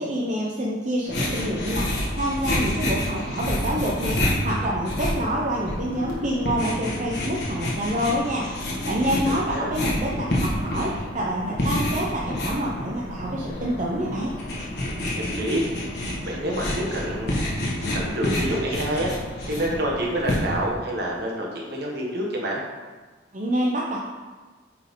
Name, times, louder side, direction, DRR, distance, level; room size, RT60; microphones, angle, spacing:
voice 1, 0.0-8.5 8.9-14.3 23.3-24.0, equal, 40° right, -4 dB, 0.8 m, -27 dB
sound 1, 1.1-20.7, left 1 dB, 60° left, 1.6 m, -28 dB
voice 2, 9.2-9.7 15.1-15.7 16.2-17.3 17.9-19.1 19.5-22.6, right 1 dB, 60° right, -2 dB, 1.5 m, -27 dB
9.0 x 4.5 x 3.7 m, 1.3 s
head